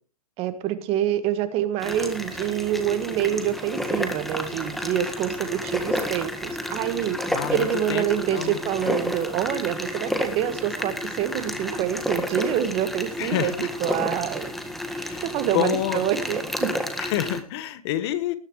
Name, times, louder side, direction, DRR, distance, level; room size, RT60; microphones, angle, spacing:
voice 1, 0.4-13.5 13.8-14.5 14.9-16.7, right 11 dB, 30° right, 11 dB, 1.6 m, -26 dB
sound 1, 1.8-17.4, equal, ahead, 1.6 m, -31 dB
voice 2, 7.3-8.0 8.3-8.6 13.2-13.7 15.0-16.1 17.0-18.4, left 12 dB, 45° left, 13 dB, 1.3 m, -28 dB
20.0 x 10.5 x 3.2 m, 0.36 s
hypercardioid pair, 130°, 19 cm